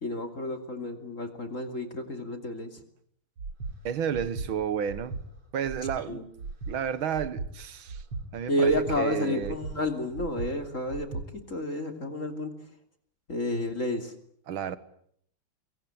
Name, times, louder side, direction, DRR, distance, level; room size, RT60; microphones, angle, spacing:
voice 1, 0.0-2.7 6.1-6.2 8.5-11.2 11.5-12.5 13.3-14.1, left 1 dB, 35° left, 3.1 m, -30 dB
Breathing, 3.4-3.7 4.1-4.5 4.9-5.2 5.6-6.0 6.4-6.7 7.1-7.5 7.9-8.2 8.6-9.0 9.4-9.7 10.1-10.5 10.9-11.2, right 4 dB, 85° right, 3.9 m, -37 dB
voice 2, 3.8-5.2 5.5-6.3 6.7-8.0 8.3-9.6 14.5-14.8, right 8 dB, 65° right, 2.1 m, -31 dB
24.5 x 23.0 x 8.8 m
omnidirectional pair, 2.4 m